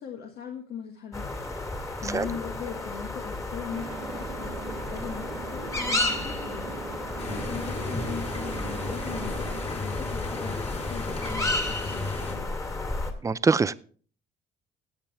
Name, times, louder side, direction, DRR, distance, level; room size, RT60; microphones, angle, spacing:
voice 1, 0.0-12.7, left 7 dB, 70° left, 3 dB, 1.7 m, -40 dB
sound 1, 1.1-13.1, left 2 dB, 20° left, 2.3 m, -32 dB
sound 2, 3.7-9.6, right 8 dB, 80° right, 1.3 m, -41 dB
sound 3, 7.2-12.3, left 3 dB, 35° left, 3.6 m, -35 dB
voice 2, 13.2-13.7, right 4 dB, 20° right, 16 dB, 0.5 m, -23 dB
16.5 x 8.7 x 3.4 m, 0.43 s
cardioid pair, 110°, 17 cm